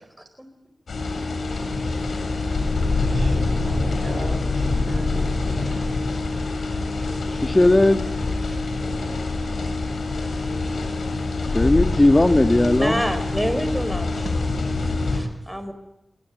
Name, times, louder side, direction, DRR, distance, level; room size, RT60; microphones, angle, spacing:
sound 1, 0.9-15.2, left 3 dB, 85° left, 7.7 m, -25 dB
voice 1, 2.9-5.2, right 2 dB, 80° right, 6 dB, 7.4 m, -39 dB
voice 2, 7.3-8.0 11.5-13.0, left 2 dB, 30° left, 7 dB, 1.6 m, -17 dB
voice 3, 8.9-9.8 12.1-14.4 14.8-15.7, equal, 5° right, 9 dB, 6.3 m, -30 dB
27.5 x 22.5 x 9.3 m, 0.89 s
cardioid pair, 50°, 0 cm